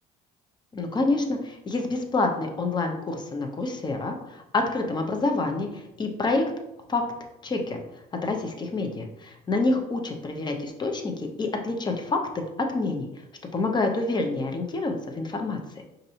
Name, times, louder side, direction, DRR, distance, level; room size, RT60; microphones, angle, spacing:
voice 1, 0.7-6.5 6.9-7.0 7.4-7.8 8.1-12.4 12.7-13.1 13.5-15.8, left 3 dB, 25° left, 4 dB, 0.7 m, -27 dB
5.2 x 2.6 x 2.8 m, 0.88 s
cardioid pair, 110°, 17 cm